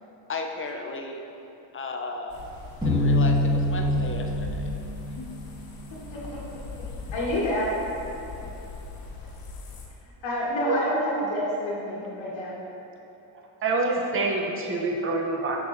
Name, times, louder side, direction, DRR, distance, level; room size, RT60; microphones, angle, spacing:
voice 1, 0.3-1.2 1.7-2.4 2.8-4.7 5.1-5.3, left 3 dB, 30° left, 3 dB, 0.5 m, -34 dB
sound 1, 2.3-9.9, left 4 dB, 50° left, 1.0 m, -39 dB
sound 2, 2.8-5.9, left 1 dB, 10° right, 1.3 m, -25 dB
voice 2, 7.1-7.7 10.0-12.6, equal, 70° left, -6 dB, 1.4 m, -28 dB
voice 3, 13.3-15.6, right 3 dB, 30° right, 0 dB, 0.7 m, -27 dB
6.7 x 6.0 x 2.5 m, 2.9 s
cardioid pair, 90°, 46 cm